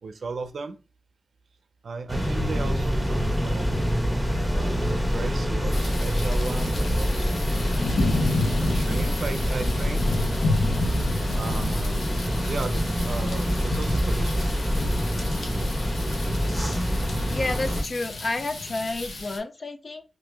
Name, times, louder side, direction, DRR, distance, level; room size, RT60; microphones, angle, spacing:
voice 1, 0.0-0.8 1.8-3.7 4.5-8.0 8.5-10.1 11.3-14.5, right 4 dB, 80° right, 9 dB, 0.5 m, -36 dB
sound 1, 2.1-17.8, equal, 10° left, 1.1 m, -26 dB
sound 2, 5.7-19.4, left 2 dB, 90° left, 0.7 m, -31 dB
voice 2, 17.3-20.0, left 2 dB, 50° left, 9 dB, 0.4 m, -30 dB
2.9 x 2.6 x 3.3 m, 0.33 s
wide cardioid pair, 70°, 0 cm